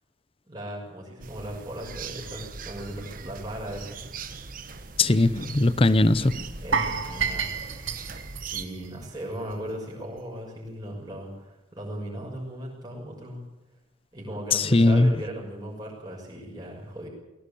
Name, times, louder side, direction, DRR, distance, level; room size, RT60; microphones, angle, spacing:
voice 1, 0.5-4.0 6.6-7.6 8.5-13.4 14.1-17.1, right 1 dB, 20° right, 6.2 m, -37 dB
sound 1, 1.2-8.7, right 4 dB, 45° right, 1.3 m, -40 dB
voice 2, 5.0-6.6 14.5-15.1, left 2 dB, 30° left, 0.7 m, -20 dB
sound 2, 6.7-9.7 10.0-10.2 10.7-10.8, right 6 dB, 75° right, 2.3 m, -30 dB
19.5 x 17.5 x 8.5 m
head